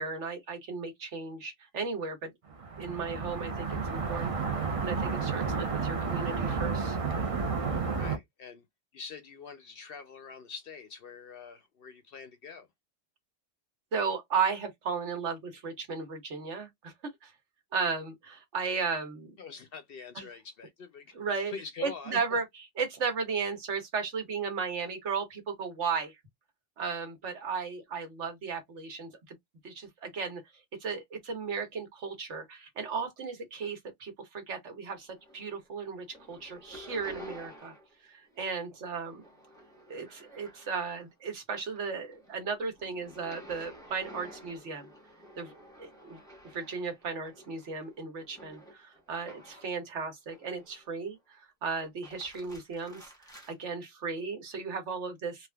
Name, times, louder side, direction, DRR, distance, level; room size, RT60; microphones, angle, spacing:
voice 1, 0.0-2.3 2.8-4.3 4.8-7.0 13.9-17.3 17.7-19.3 20.1-20.2 21.1-21.5 21.8-26.2 26.8-29.3 29.6-30.4 30.8-37.7 38.0-39.2 39.9-44.9 45.4-45.5 45.8-46.2 46.5-53.1 53.5-55.5, right 5 dB, 70° right, 1.4 m, -35 dB
sound 1, 2.5-8.2, right 5 dB, 40° right, 0.5 m, -31 dB
voice 2, 7.9-8.7 8.9-12.7 19.4-21.2 21.5-22.4, left 5 dB, 60° left, 0.7 m, -44 dB
sound 2, 35.0-35.7 36.0-38.0 38.3-41.1 41.5-49.8 50.3-51.0 51.8-53.5, equal, 5° left, 0.9 m, -52 dB
3.4 x 2.5 x 2.2 m
omnidirectional pair, 1.3 m